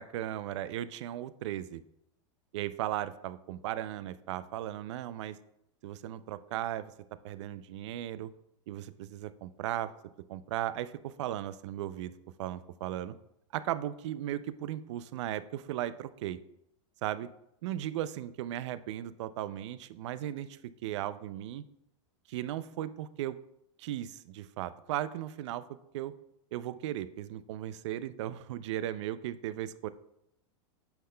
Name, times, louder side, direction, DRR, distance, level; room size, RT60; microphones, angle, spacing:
voice 1, 0.0-1.8 2.5-5.4 5.8-6.9 7.2-8.3 8.7-9.9 10.3-12.1 12.4-13.1 13.5-16.4 17.0-17.3 17.6-21.6 22.3-23.4 23.8-25.6 25.9-26.1 26.5-29.9, right 12 dB, 65° right, 15 dB, 0.4 m, -36 dB
8.6 x 5.7 x 2.2 m, 0.80 s
supercardioid pair, 155°, 16 cm